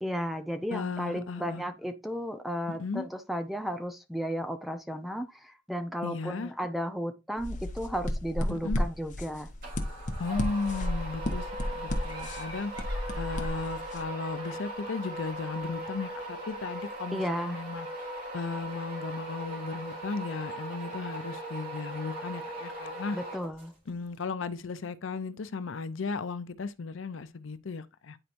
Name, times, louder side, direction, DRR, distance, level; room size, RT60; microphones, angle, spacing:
voice 1, 0.0-9.5 17.1-17.6 23.1-23.7, equal, ahead, 0.7 m, -34 dB
voice 2, 0.7-1.6 2.7-3.1 6.0-6.5 8.5-8.8 10.2-17.9 18.3-23.2 23.9-28.2, left 4 dB, 75° left, 0.6 m, -35 dB
sound 1, 7.4-14.0, left 1 dB, 40° left, 1.0 m, -33 dB
sound 2, 9.6-23.9, right 1 dB, 45° right, 3.1 m, -39 dB
Laughter, 12.0-15.7, right 1 dB, 20° right, 2.3 m, -50 dB
9.9 x 4.5 x 2.6 m
head